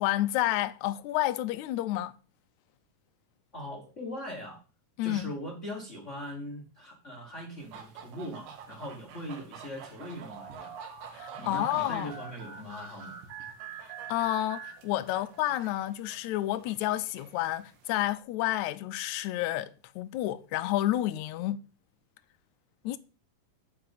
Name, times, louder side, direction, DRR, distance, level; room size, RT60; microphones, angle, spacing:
voice 1, 0.0-2.2 5.0-5.3 11.1-12.1 14.1-21.6 22.8-23.0, left 14 dB, 80° left, 1.7 m, -30 dB
voice 2, 3.5-4.6 5.0-10.8 11.4-13.2, equal, 60° left, 0.7 m, -40 dB
sound 1, 7.6-18.2, right 6 dB, 85° right, 2.9 m, -49 dB
sound 2, 10.3-15.4, right 7 dB, 60° right, 2.8 m, -45 dB
7.6 x 4.8 x 7.1 m
omnidirectional pair, 3.9 m